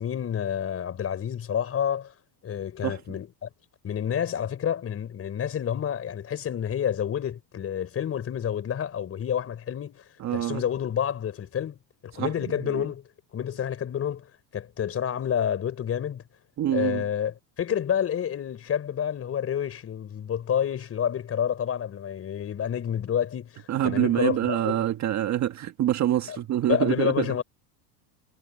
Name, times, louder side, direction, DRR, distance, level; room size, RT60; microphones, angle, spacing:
voice 1, 0.0-2.1 2.4-3.5 3.8-13.0 13.3-16.2 16.7-24.8 26.3-26.4 26.7-27.4, left 9 dB, 30° left, 4.7 m, -29 dB
voice 2, 2.8-3.2 10.2-10.6 12.2-12.9 16.6-17.0 23.7-27.3, right 12 dB, 35° right, 1.6 m, -26 dB
supercardioid pair, 130°, 47 cm